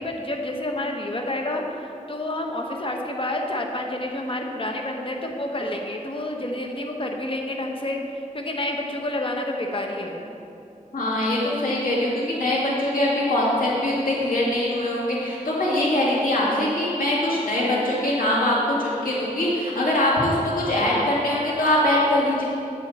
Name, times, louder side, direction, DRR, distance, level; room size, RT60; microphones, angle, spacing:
voice 1, 0.0-1.6 2.1-10.3, left 1 dB, 40° left, 2 dB, 1.1 m, -29 dB
voice 2, 10.9-22.4, left 1 dB, 75° left, -6 dB, 2.3 m, -22 dB
9.3 x 7.4 x 4.2 m, 2.7 s
wide cardioid pair, 60°, 14 cm